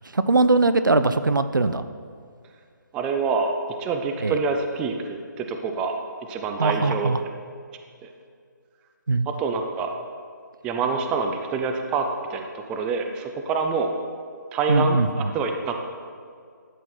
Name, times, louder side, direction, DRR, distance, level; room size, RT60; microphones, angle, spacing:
voice 1, 0.1-1.8 4.2-4.4 6.6-7.2 9.1-9.3 14.7-15.3, right 3 dB, 80° right, 11 dB, 0.6 m, -21 dB
voice 2, 2.9-3.5 3.8-6.0 6.3-7.1 8.0-8.1 9.3-9.9 10.6-13.9 14.5-15.9, right 4 dB, 10° right, 4 dB, 0.4 m, -26 dB
12.5 x 8.2 x 4.4 m, 2.1 s
figure-of-eight pair, 145°, 11 cm